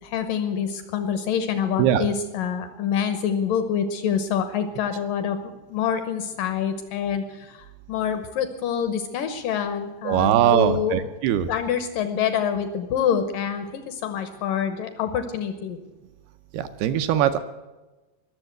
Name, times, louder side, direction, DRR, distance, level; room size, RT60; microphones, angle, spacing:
voice 1, 0.0-5.4 5.7-11.0 11.5-15.8, left 8 dB, 80° left, 9 dB, 2.0 m, -26 dB
voice 2, 10.1-11.5 16.5-17.4, right 10 dB, 80° right, 9 dB, 2.3 m, -21 dB
21.0 x 7.3 x 7.9 m, 1.1 s
omnidirectional pair, 5.1 m